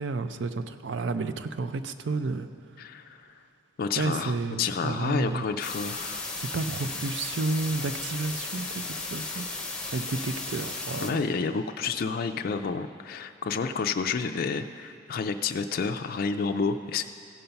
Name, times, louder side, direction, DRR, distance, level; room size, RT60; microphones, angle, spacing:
voice 1, 0.0-2.5 4.0-5.5 6.4-9.5 9.8-11.2, right 3 dB, 70° right, 11 dB, 0.5 m, -31 dB
voice 2, 2.8-3.2 3.8-6.3 11.0-17.0, left 5 dB, 50° left, 7 dB, 0.4 m, -30 dB
sound 1, 5.6-11.1, left 3 dB, 5° left, 0.8 m, -35 dB
15.5 x 5.4 x 5.7 m, 2.4 s
head